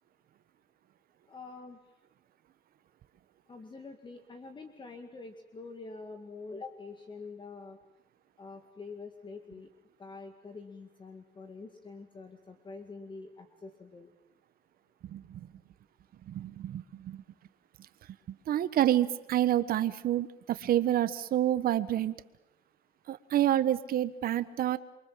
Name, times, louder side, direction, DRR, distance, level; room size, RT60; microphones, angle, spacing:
voice 1, 1.3-1.8 3.5-7.8 8.4-9.7 10.0-14.1, left 4 dB, 30° left, 6 dB, 2.2 m, -46 dB
voice 2, 15.0-15.4 16.3-17.2 18.5-22.1 23.1-24.8, right 12 dB, 60° right, 13 dB, 1.3 m, -28 dB
28.5 x 24.0 x 7.5 m, 0.87 s
cardioid pair, 110°, 17 cm